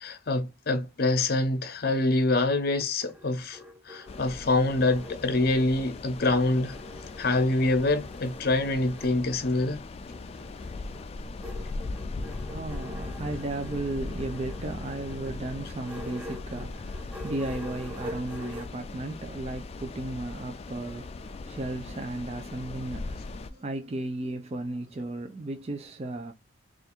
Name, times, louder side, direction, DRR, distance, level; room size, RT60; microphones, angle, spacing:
voice 1, 0.0-3.6 3.9-6.8 7.2-9.8, left 2 dB, 50° left, 0.7 m, -25 dB
sound 1, 2.8-5.9 6.2-9.2 10.1-18.7, left 1 dB, 10° right, 0.8 m, -46 dB
sound 2, 4.1-23.5, left 3 dB, 30° left, 0.3 m, -39 dB
voice 2, 12.5-26.3, right 2 dB, 35° right, 0.5 m, -35 dB
3.4 x 2.5 x 4.3 m
head